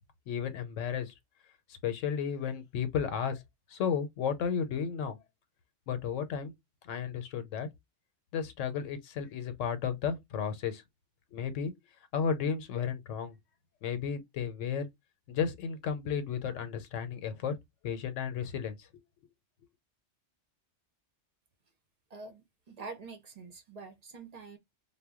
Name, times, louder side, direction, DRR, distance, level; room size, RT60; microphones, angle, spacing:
voice 1, 0.3-1.1 1.8-3.4 3.7-5.2 5.9-6.5 6.8-7.7 8.3-10.8 11.3-11.7 12.1-13.4 13.8-14.9 15.3-17.5 17.8-19.0, left 7 dB, 85° left, 1.0 m, -33 dB
voice 2, 22.1-24.6, right 4 dB, 50° right, 0.5 m, -46 dB
2.2 x 2.1 x 3.4 m
omnidirectional pair, 1.2 m